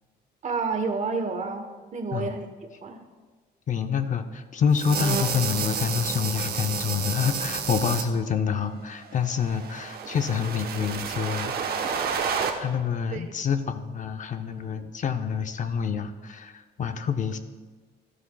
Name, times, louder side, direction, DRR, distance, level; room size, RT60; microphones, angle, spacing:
voice 1, 0.4-3.0 13.1-13.4, right 4 dB, 45° right, 6 dB, 1.1 m, -30 dB
voice 2, 3.7-11.9 12.6-17.4, left 7 dB, 45° left, 8 dB, 0.6 m, -27 dB
sound 1, 4.7-8.0 9.2-12.5, right 6 dB, 65° right, 1.0 m, -30 dB
13.5 x 11.0 x 2.3 m, 1.4 s
cardioid pair, 125°, 17 cm